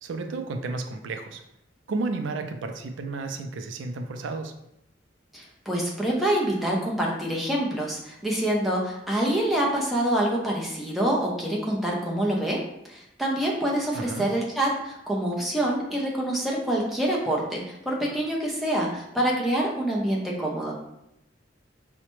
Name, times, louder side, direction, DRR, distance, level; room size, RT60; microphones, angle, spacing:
voice 1, 0.0-1.4 1.9-4.5 13.9-14.3, right 3 dB, 85° right, 6 dB, 0.4 m, -32 dB
voice 2, 5.3-12.6 12.9-20.7, right 1 dB, ahead, -3 dB, 0.6 m, -26 dB
4.7 x 2.1 x 3.0 m, 0.83 s
head